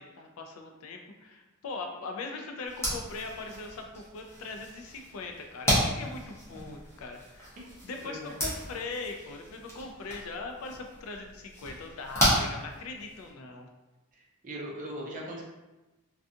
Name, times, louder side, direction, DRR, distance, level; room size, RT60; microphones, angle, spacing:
voice 1, 0.0-7.6 7.8-13.7, left 3 dB, 65° left, 3 dB, 0.4 m, -40 dB
sound 1, 2.7-13.3, equal, 10° left, 0.7 m, -33 dB
voice 2, 8.0-8.3 14.1-15.4, equal, 35° right, -2 dB, 0.5 m, -40 dB
2.4 x 2.3 x 2.6 m, 1.1 s
head